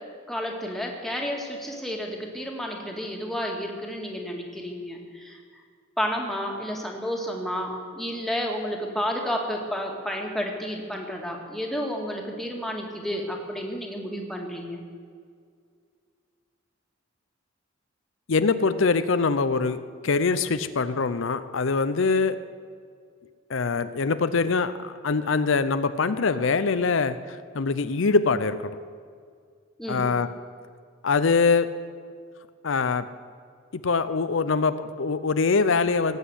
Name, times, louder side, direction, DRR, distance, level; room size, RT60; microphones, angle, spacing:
voice 1, 0.3-5.4 6.0-14.8 29.8-30.1, equal, ahead, 0 dB, 1.9 m, -31 dB
voice 2, 18.3-22.4 23.5-27.2 27.5-28.6 29.9-30.3 31.0-31.7 32.6-33.0 33.8-36.2, left 4 dB, 70° left, 12 dB, 0.6 m, -23 dB
18.0 x 8.3 x 8.0 m, 2.1 s
head